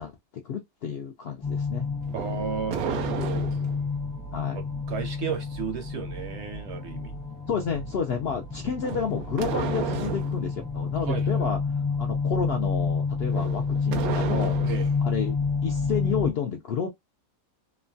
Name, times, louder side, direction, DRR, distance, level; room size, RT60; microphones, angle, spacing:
voice 1, 0.0-1.9 4.3-4.6 7.5-11.6 12.0-14.7 15.0-16.9, left 6 dB, 70° left, 0.6 m, -31 dB
sound 1, 1.4-16.3, left 4 dB, 30° left, 0.7 m, -29 dB
voice 2, 2.1-3.5 4.5-7.1 11.1-11.5 14.6-14.9, right 6 dB, 65° right, 0.7 m, -34 dB
sound 2, 2.1-3.9 8.8-10.4 13.3-15.0, right 7 dB, 85° right, 1.0 m, -32 dB
3.0 x 2.1 x 2.5 m
omnidirectional pair, 1.5 m